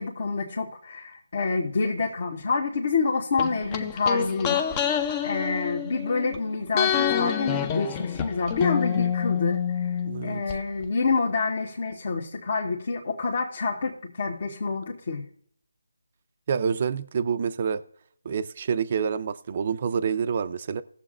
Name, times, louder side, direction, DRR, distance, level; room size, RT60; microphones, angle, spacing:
voice 1, 0.0-15.2, left 4 dB, 50° left, 1.3 m, -28 dB
sound 1, 3.4-6.4 6.7-10.6 10.8-10.9, left 8 dB, 15° left, 0.5 m, -27 dB
voice 2, 10.0-10.4 16.5-17.8 18.2-20.8, right 6 dB, 35° right, 0.5 m, -27 dB
19.5 x 7.3 x 2.5 m
figure-of-eight pair, 160°, 0 cm